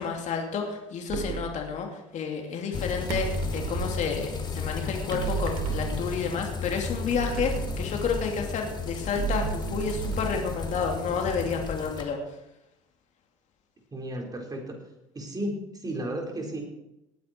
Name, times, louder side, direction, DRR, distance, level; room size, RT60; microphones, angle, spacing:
voice 1, 0.0-12.2, left 6 dB, 50° left, 2 dB, 2.7 m, -30 dB
sound 1, 1.1-1.6 3.1-4.0 5.1-6.4 7.1-8.5 9.1-11.1, right 7 dB, 60° right, 2.9 m, -33 dB
sound 2, 2.7-12.0, left 5 dB, 25° left, 2.9 m, -34 dB
voice 2, 13.9-14.8 15.1-16.6, right 1 dB, 25° right, 1 dB, 4.6 m, -33 dB
19.0 x 9.4 x 4.5 m, 0.91 s
hypercardioid pair, 70°, 16 cm